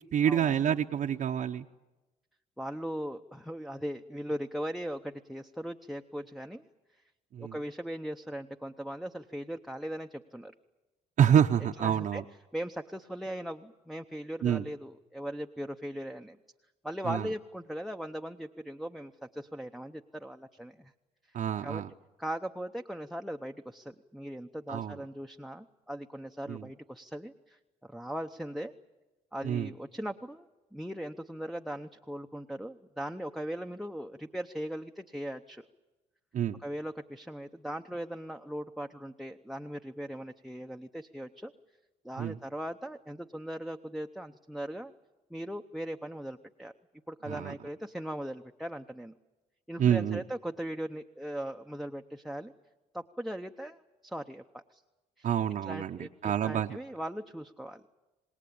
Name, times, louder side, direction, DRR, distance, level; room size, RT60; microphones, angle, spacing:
voice 1, 0.1-1.6 7.3-7.5 11.2-12.2 14.4-14.6 17.0-17.3 21.3-21.9 24.7-25.0 26.5-26.7 29.4-29.7 36.3-36.6 42.2-42.4 47.3-47.5 49.8-50.2 55.2-56.8, right 9 dB, 55° right, 4 dB, 0.8 m, -27 dB
voice 2, 2.6-6.6 7.4-10.5 11.8-12.2 12.5-16.4 16.8-20.9 21.3-21.4 21.6-21.8 22.2-28.7 29.3-35.6 36.6-41.5 42.0-44.9 45.3-46.7 47.1-49.1 49.7-52.5 52.9-54.8 55.2-55.3 55.6-57.8, equal, ahead, 4 dB, 0.8 m, -39 dB
27.0 x 19.0 x 8.6 m, 1.1 s
cardioid pair, 90°, 15 cm